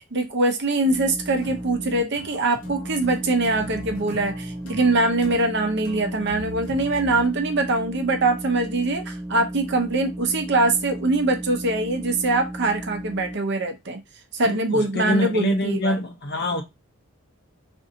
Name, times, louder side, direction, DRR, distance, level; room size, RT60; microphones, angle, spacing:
voice 1, 0.1-14.0 14.3-16.0, right 2 dB, 50° right, 0.7 m, -23 dB
sound 1, 0.8-2.0 2.5-13.3, right 1 dB, 15° right, 0.3 m, -35 dB
sound 2, 1.4-7.3, equal, 80° left, 1.0 m, -41 dB
voice 2, 14.4-16.6, left 1 dB, 45° left, 0.7 m, -25 dB
3.8 x 2.6 x 2.6 m
head